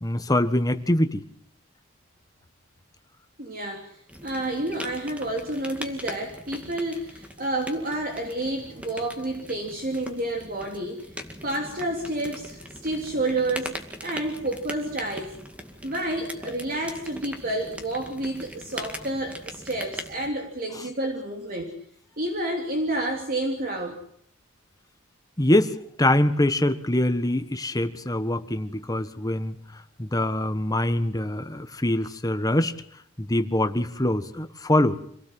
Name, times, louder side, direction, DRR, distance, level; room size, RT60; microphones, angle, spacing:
voice 1, 0.0-1.2 20.7-20.9 25.4-29.6 30.0-32.7 33.2-35.0, left 1 dB, 20° left, 9 dB, 1.4 m, -24 dB
voice 2, 3.4-4.0 4.2-11.2 11.4-13.7 14.0-15.4 15.8-21.7 22.2-24.0, right 1 dB, 45° right, 2 dB, 3.2 m, -29 dB
sound 1, 4.1-20.3, equal, 5° right, 2.2 m, -41 dB
26.5 x 17.5 x 7.8 m, 0.65 s
head